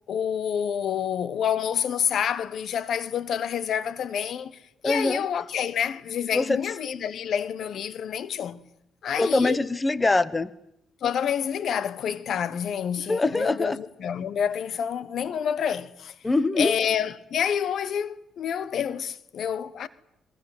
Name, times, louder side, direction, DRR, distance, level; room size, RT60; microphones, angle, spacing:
voice 1, 0.1-8.6 9.0-9.6 11.0-16.1 16.5-19.9, left 8 dB, 65° left, 1.3 m, -28 dB
voice 2, 4.8-5.2 6.3-6.6 9.2-10.5 13.1-13.8 16.2-16.7, left 2 dB, 20° left, 1.2 m, -23 dB
26.5 x 22.5 x 8.1 m
cardioid pair, 90°, 0 cm